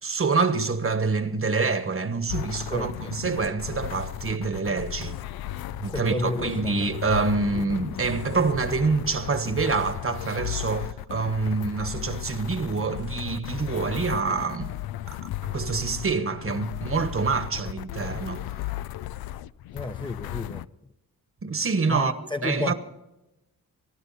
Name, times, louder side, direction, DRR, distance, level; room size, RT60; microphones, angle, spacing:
voice 1, 0.0-5.2 5.8-14.7 15.1-15.2 15.4-18.4 21.4-22.1 22.4-22.7, right 4 dB, 35° right, 1.3 m, -26 dB
sound 1, 2.3-20.7, left 14 dB, 90° left, 0.5 m, -35 dB
voice 2, 5.8-6.9 7.5-7.6 19.7-20.6 21.9-22.7, left 2 dB, 15° left, 0.8 m, -32 dB
24.5 x 11.0 x 4.2 m
cardioid pair, 80°, 36 cm